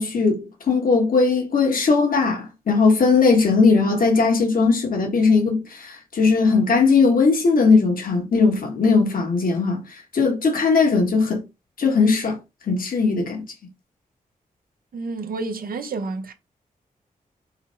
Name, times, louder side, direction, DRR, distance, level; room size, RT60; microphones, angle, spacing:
voice 1, 0.0-9.8 10.1-11.4 11.8-12.4 12.7-13.4, left 4 dB, 70° left, 1.3 m, -19 dB
voice 2, 14.9-16.3, right 3 dB, 75° right, 0.8 m, -29 dB
4.0 x 2.0 x 4.3 m
cardioid pair, 70°, 15 cm